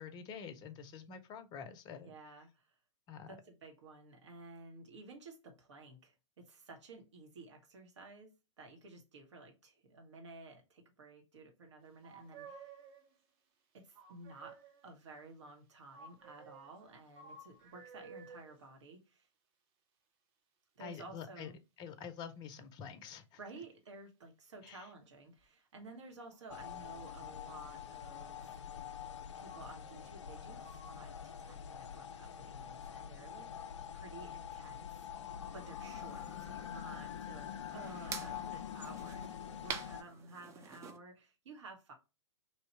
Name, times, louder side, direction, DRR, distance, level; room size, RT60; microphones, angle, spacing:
voice 1, 0.0-2.1 3.1-3.4 20.8-21.5 21.8-23.4 24.6-24.9, left 7 dB, 25° left, 0.6 m, -47 dB
voice 2, 2.0-2.7 3.3-12.8 13.7-19.3 20.7-21.6 23.4-28.6 29.3-35.0 35.5-41.9, right 3 dB, 65° right, 1.5 m, -53 dB
sound 1, 12.0-13.2 13.9-15.0 15.9-18.5 25.4-25.5 26.2-27.1 27.8-28.6 29.5-30.3 30.6-31.5, right 4 dB, 35° right, 0.9 m, -56 dB
sound 2, 26.5-40.0, left 9 dB, 65° left, 0.4 m, -45 dB
sound 3, 35.8-41.0, right 6 dB, 20° right, 0.5 m, -48 dB
3.0 x 2.7 x 4.4 m
hypercardioid pair, 115°, 16 cm